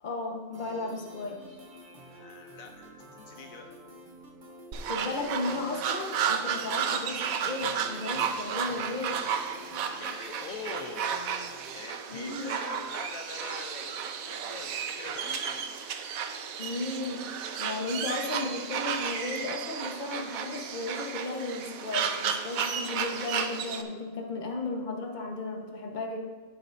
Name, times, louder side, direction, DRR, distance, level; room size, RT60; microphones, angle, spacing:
voice 1, 0.0-1.4 4.9-9.2 12.1-12.6 16.6-17.3 17.6-26.2, left 2 dB, 35° left, 2 dB, 1.2 m, -35 dB
sound 1, 0.5-11.8, equal, 35° right, 1.2 m, -50 dB
voice 2, 2.0-3.7 10.0-11.1 11.7-15.8, left 5 dB, 70° left, 4 dB, 1.1 m, -44 dB
sound 2, 4.7-23.8, right 7 dB, 75° right, 1.1 m, -33 dB
11.5 x 10.5 x 2.6 m, 1.5 s
omnidirectional pair, 1.5 m